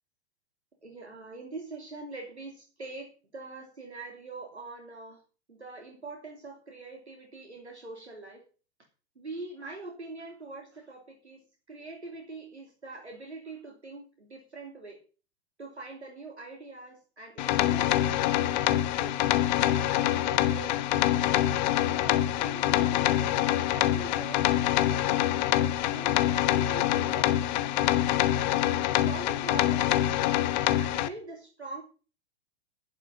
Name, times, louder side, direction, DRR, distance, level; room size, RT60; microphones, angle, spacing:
voice 1, 0.8-5.2 5.5-8.4 9.1-15.0 15.6-19.2 19.6-21.4 21.7-28.1 28.6-30.4 30.8-31.8, right 3 dB, 80° right, 1 dB, 3.3 m, -44 dB
sound 1, 17.4-31.1, left 13 dB, 40° left, 1.2 m, -25 dB
11.5 x 11.5 x 5.3 m, 0.36 s
figure-of-eight pair, 100°, 33 cm